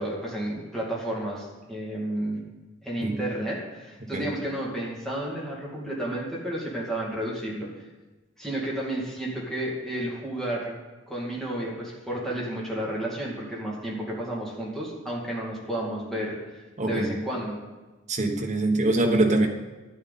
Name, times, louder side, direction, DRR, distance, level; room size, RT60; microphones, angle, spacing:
voice 1, 0.0-2.4 2.8-7.7 8.4-10.7 11.1-17.6, right 1 dB, ahead, -5 dB, 2.4 m, -32 dB
voice 2, 16.8-17.2 18.1-19.5, right 2 dB, 35° right, 2 dB, 1.2 m, -24 dB
13.0 x 8.8 x 4.2 m, 1.2 s
head